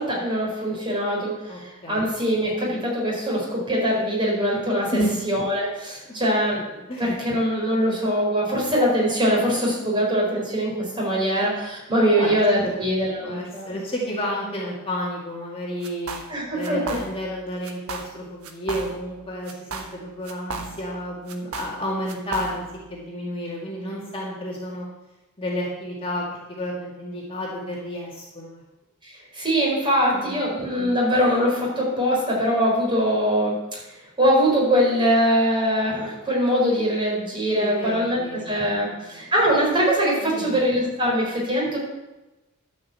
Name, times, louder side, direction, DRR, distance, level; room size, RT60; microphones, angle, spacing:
voice 1, 0.0-5.0 5.3-13.8 16.3-17.0 29.0-33.5 34.2-38.2 38.5-41.8, equal, 25° right, -3 dB, 4.4 m, -22 dB
voice 2, 1.5-2.1 4.9-5.1 6.9-7.0 12.1-12.8 13.2-16.1 16.5-22.6 22.9-24.9 25.4-28.6 30.3-30.4 37.6-39.2 40.2-40.7, equal, 25° left, -4 dB, 2.1 m, -31 dB
sound 1, 15.8-16.3 16.6-17.3 17.6-18.2 18.4-19.2 19.5-21.0 21.3-22.8, right 3 dB, 80° right, 1.3 m, -35 dB
12.0 x 5.5 x 7.6 m, 1.0 s
head